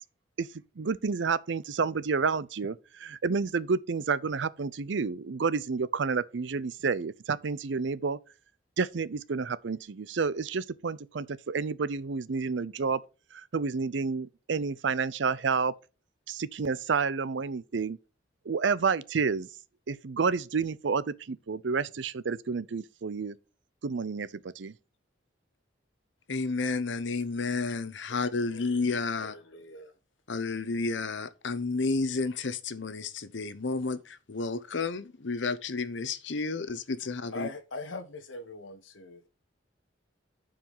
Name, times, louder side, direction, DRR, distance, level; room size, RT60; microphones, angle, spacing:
voice 1, 0.8-8.2 8.8-13.0 13.3-15.7 16.3-18.0 18.4-19.5 19.9-23.4 23.8-24.7, right 5 dB, 70° right, 0.5 m, -30 dB
voice 2, 26.3-29.3 30.3-37.5, left 3 dB, 70° left, 0.8 m, -31 dB
voice 3, 29.2-29.9 37.3-39.3, left 3 dB, 85° left, 1.2 m, -41 dB
8.8 x 4.9 x 5.5 m
head